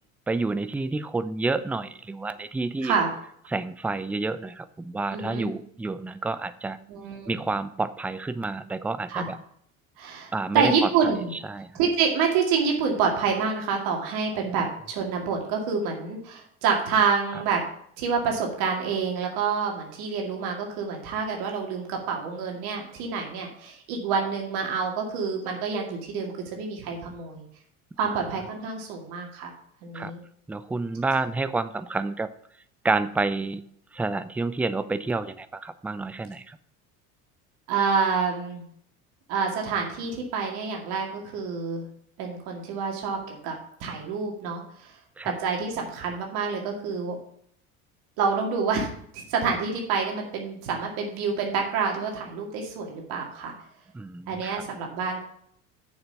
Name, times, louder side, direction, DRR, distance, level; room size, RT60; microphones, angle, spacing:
voice 1, 0.3-3.0 3.5-6.8 7.3-9.4 10.3-11.7 14.4-14.7 29.9-30.1 30.5-32.3 32.8-33.6 33.9-36.6 45.2-45.4 53.9-54.6, right 3 dB, 5° right, 14 dB, 0.3 m, -29 dB
voice 2, 5.1-5.5 6.9-7.4 9.1-9.2 10.0-11.3 11.7-17.6 18.0-27.4 28.0-29.5 29.8-30.2 37.7-38.6 39.3-41.9 42.2-43.6 43.8-44.9 45.2-47.2 48.2-53.5 54.3-55.2, right 5 dB, 60° right, 1 dB, 2.3 m, -27 dB
6.8 x 6.8 x 6.9 m, 0.68 s
hypercardioid pair, 70°, 42 cm